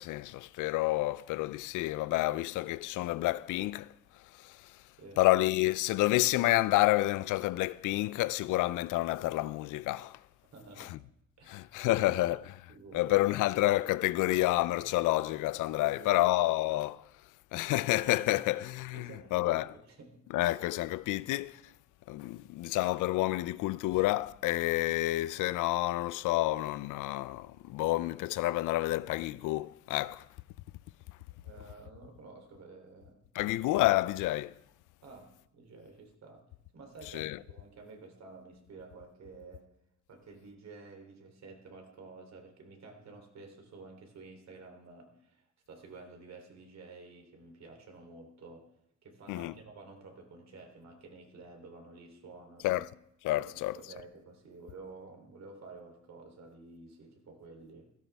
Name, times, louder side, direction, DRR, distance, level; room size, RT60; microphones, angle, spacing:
voice 1, 0.0-4.8 5.2-10.2 10.8-11.0 11.5-12.5 12.9-17.0 17.5-19.7 20.3-21.7 22.1-30.3 33.3-34.5 37.1-37.4 49.3-49.5 52.6-52.9 53.2-53.8, left 17 dB, 85° left, 0.5 m, -29 dB
voice 2, 10.5-11.1 11.4-12.3 12.7-13.4 14.7-14.9 15.8-16.3 18.9-20.2 25.0-25.1 31.4-33.2 35.0-36.4 36.7-39.7 40.1-48.7 49.0-52.9 53.3-57.9, right 3 dB, 60° right, 3.3 m, -51 dB
16.5 x 13.5 x 3.5 m
cardioid pair, 90°, 30 cm